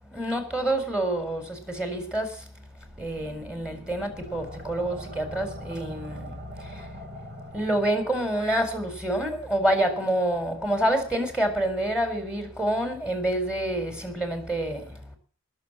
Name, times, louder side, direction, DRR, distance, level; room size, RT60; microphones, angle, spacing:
voice 1, 0.1-2.4 3.0-6.3 6.7-6.8 7.5-14.9, right 1 dB, 5° right, 4.0 m, -27 dB
sound 1, 2.7-8.3, equal, 40° right, 7.8 m, -43 dB
20.5 x 7.2 x 7.4 m
head